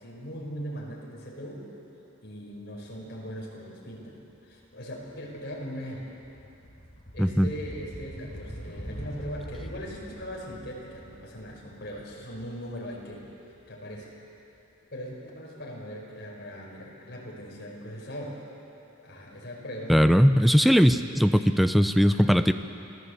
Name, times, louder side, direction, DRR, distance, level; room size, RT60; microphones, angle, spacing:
voice 1, 0.0-1.6 2.2-6.2 7.1-13.2 13.7-14.1 14.9-18.4 19.0-20.2 21.4-21.6 22.0-22.4, equal, 50° left, -3 dB, 5.5 m, -40 dB
sound 1, 4.5-4.7 5.1-13.9, equal, 30° left, 3.4 m, -44 dB
voice 2, 19.9-22.5, equal, ahead, 9 dB, 0.5 m, -19 dB
27.0 x 16.5 x 8.3 m, 2.9 s
head